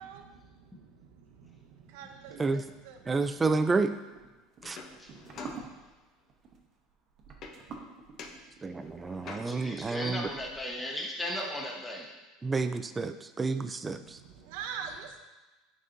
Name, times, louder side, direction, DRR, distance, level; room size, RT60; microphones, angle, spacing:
voice 1, 0.0-3.3 13.9-15.2, right 7 dB, 75° right, 5 dB, 0.6 m, -45 dB
voice 2, 3.1-3.9 4.6-4.8 8.6-10.3 12.4-14.2, right 3 dB, 15° right, 9 dB, 0.3 m, -30 dB
sound 1, 3.9-10.8, right 4 dB, 35° right, 0.8 m, -49 dB
sound 2, 4.6-6.2 7.4-7.9 8.2-9.8 13.1-13.2 13.5-14.5, left 4 dB, 40° left, 0.6 m, -48 dB
voice 3, 9.4-12.1, left 1 dB, 10° left, -1 dB, 1.0 m, -36 dB
8.9 x 4.1 x 2.6 m, 1.2 s
supercardioid pair, 140°, 0 cm